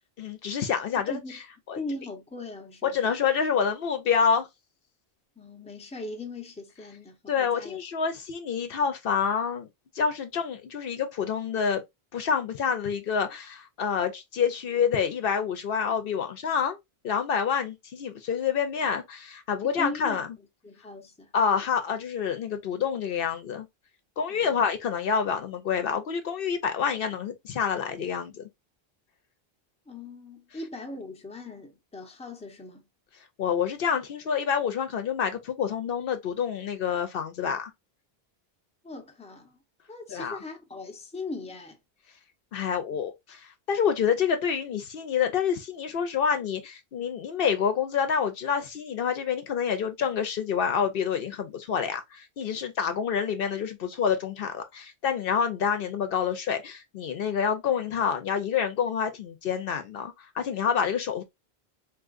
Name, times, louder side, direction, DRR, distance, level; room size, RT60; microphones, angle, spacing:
voice 1, 0.2-1.2 1.7-1.8 2.8-4.5 7.3-9.7 9.9-11.8 12.1-16.8 17.0-20.3 21.3-23.7 24.2-28.5 33.4-37.7 40.1-40.4 42.5-61.2, left 7 dB, 65° left, 0.8 m, -27 dB
voice 2, 1.0-1.4 1.7-3.2 5.4-7.8 19.6-21.3 24.3-24.7 29.9-32.9 38.8-39.6 39.9-41.8, left 2 dB, 5° left, 0.6 m, -39 dB
3.6 x 2.7 x 2.4 m
omnidirectional pair, 1.0 m